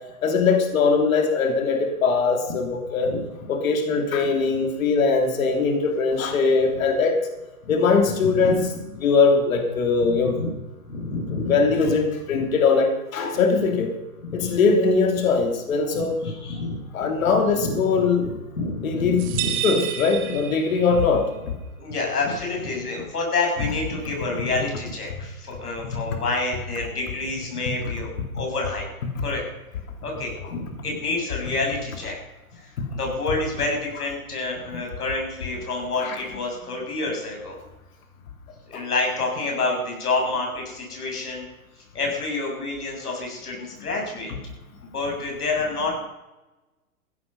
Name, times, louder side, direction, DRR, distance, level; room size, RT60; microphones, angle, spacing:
voice 1, 0.2-3.1 3.5-7.2 7.7-8.7 9.0-10.4 11.5-13.9 14.3-16.2 16.9-18.3 18.8-19.2 19.6-21.3 36.0-36.1 38.7-38.8, left 4 dB, 65° left, 4 dB, 3.0 m, -21 dB
voice 2, 8.2-8.6 10.1-10.5 10.8-11.7 12.3-12.5 14.2-14.6 15.9-16.8 17.6-17.8 18.0-19.5 20.9-21.0 21.8-28.8 29.2-29.4 30.0-32.2 32.5-37.6 38.7-41.4 41.9-44.3 44.8-46.0, left 3 dB, 85° left, 0 dB, 6.7 m, -28 dB
sound 1, 19.2-21.1, right 10 dB, 35° right, 2.0 m, -30 dB
16.0 x 12.0 x 5.5 m, 1.0 s
hypercardioid pair, 130°, 44 cm